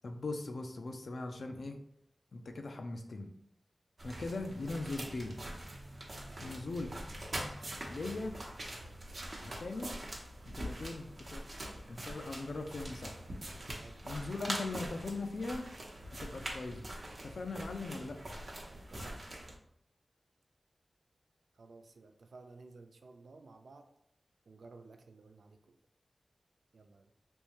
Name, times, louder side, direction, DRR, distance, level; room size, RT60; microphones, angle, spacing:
voice 1, 0.0-1.8 2.3-3.3 4.0-5.4 6.4-6.9 7.9-8.4 9.4-9.9 10.5-11.5 11.9-13.2 14.0-15.7 16.2-16.9 17.2-18.2, left 3 dB, 75° left, 4 dB, 0.4 m, -40 dB
sound 1, 4.0-19.6, right 1 dB, 50° right, 0.8 m, -44 dB
voice 2, 6.3-6.6 10.8-11.0 13.8-14.1 18.7-19.2 21.5-23.9 24.5-25.8 26.7-27.1, right 3 dB, 85° right, 6 dB, 0.3 m, -55 dB
3.5 x 2.7 x 3.0 m, 0.75 s
wide cardioid pair, 80°, 0 cm